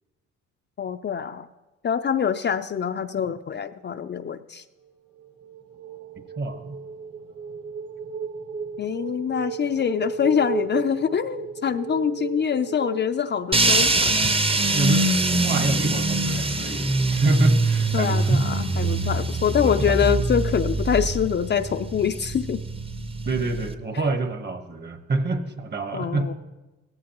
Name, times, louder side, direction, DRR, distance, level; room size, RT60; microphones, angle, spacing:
voice 1, 0.8-1.5 1.8-4.6 8.8-14.1 17.9-22.6 25.9-26.3, left 8 dB, 35° left, 8 dB, 0.4 m, -25 dB
sound 1, 5.2-14.1, right 5 dB, 50° right, 1.4 m, -35 dB
voice 2, 6.4-6.8 14.7-15.1 15.4-18.5 19.6-20.1 23.2-26.3, right 2 dB, 35° right, 8 dB, 1.2 m, -26 dB
sound 2, 13.5-23.7, right 2 dB, 20° right, 0.8 m, -23 dB
16.5 x 13.5 x 3.0 m, 1.1 s
cardioid pair, 90°, 30 cm